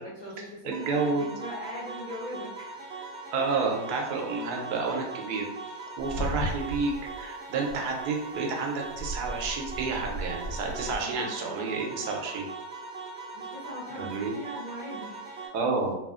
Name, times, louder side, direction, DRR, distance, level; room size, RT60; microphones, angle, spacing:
voice 1, 0.0-2.8 10.9-11.8 13.1-15.2, equal, 60° left, -9 dB, 0.4 m, -41 dB
voice 2, 0.6-1.3 3.3-12.4 14.0-14.3 15.5-16.0, right 4 dB, 90° right, 1 dB, 1.2 m, -30 dB
sound 1, 0.7-15.5, right 3 dB, 60° right, 0.6 m, -41 dB
sound 2, 6.0-7.3 7.7-7.9 8.9-11.0, right 1 dB, 85° left, 1.2 m, -35 dB
3.0 x 2.4 x 2.3 m, 0.88 s
omnidirectional pair, 1.6 m